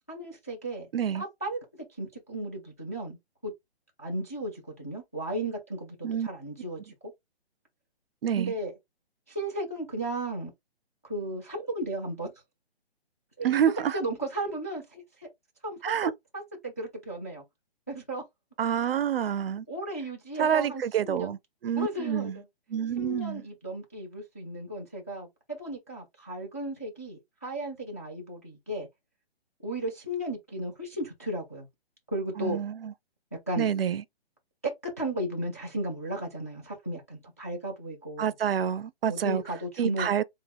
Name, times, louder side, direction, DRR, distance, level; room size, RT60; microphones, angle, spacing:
voice 1, 0.1-0.9 1.1-1.6 2.0-3.2 3.4-3.5 4.0-6.9 8.3-8.7 9.3-10.5 11.0-12.3 13.4-15.3 15.6-17.4 17.9-18.2 19.7-21.3 21.8-22.4 23.0-28.9 29.6-31.7 32.1-32.6 33.3-33.7 34.6-38.3 39.1-40.1, right 1 dB, 15° left, 0.3 m, -35 dB
voice 2, 0.9-1.2 6.0-6.3 8.2-8.5 13.4-14.0 15.8-16.1 18.6-19.7 20.4-21.4 21.6-22.4 22.7-23.4 32.4-32.9 33.6-34.0 38.2-39.4 39.8-40.2, right 8 dB, 65° right, 0.5 m, -27 dB
3.6 x 2.1 x 3.3 m
hypercardioid pair, 155°, 32 cm